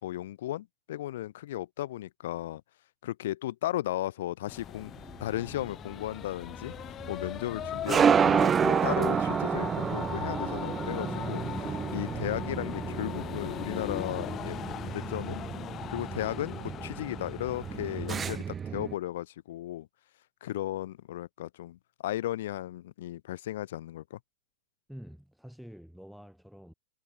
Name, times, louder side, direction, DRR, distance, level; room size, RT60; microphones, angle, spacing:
voice 1, 0.0-2.6 3.0-4.9 5.2-6.7 7.1-15.4 15.9-19.9 20.4-24.2, left 14 dB, 55° left, 2.9 m, -35 dB
sound 1, 4.5-18.4, left 11 dB, 30° left, 4.9 m, -40 dB
sound 2, 4.9-18.9, right 7 dB, 20° right, 2.3 m, -30 dB
voice 2, 24.9-26.7, equal, ahead, 5.7 m, -47 dB
figure-of-eight pair, 90°, 0 cm